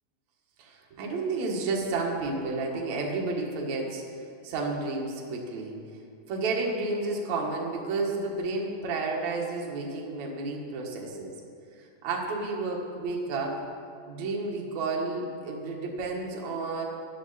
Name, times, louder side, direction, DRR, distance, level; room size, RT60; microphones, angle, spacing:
voice 1, 0.6-4.0 4.4-5.8 6.3-11.3 12.0-13.6 14.1-16.8, right 3 dB, 55° right, -1 dB, 2.4 m, -31 dB
14.5 x 11.0 x 4.1 m, 2.4 s
omnidirectional pair, 4.7 m